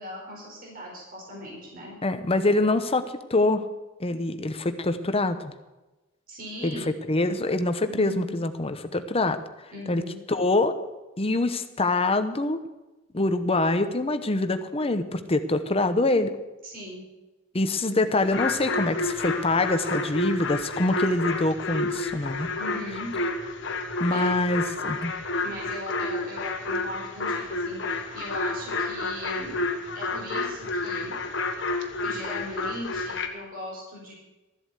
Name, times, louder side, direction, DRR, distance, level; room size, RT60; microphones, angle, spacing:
voice 1, 0.0-2.0 6.3-6.9 7.8-8.4 9.7-10.2 16.6-17.0 17.8-18.0 22.6-23.1 24.1-24.4 25.4-29.6 29.9-31.1 32.0-34.1, left 1 dB, 45° right, -3 dB, 4.8 m, -39 dB
voice 2, 2.0-3.6 4.0-5.5 6.6-9.4 9.9-10.0 10.3-10.7 11.2-12.6 13.1-16.3 17.5-22.5 24.0-25.1, left 2 dB, 30° left, 10 dB, 0.9 m, -25 dB
sound 1, 18.2-33.3, left 3 dB, 60° left, 1.4 m, -30 dB
13.5 x 7.9 x 8.1 m, 1.1 s
head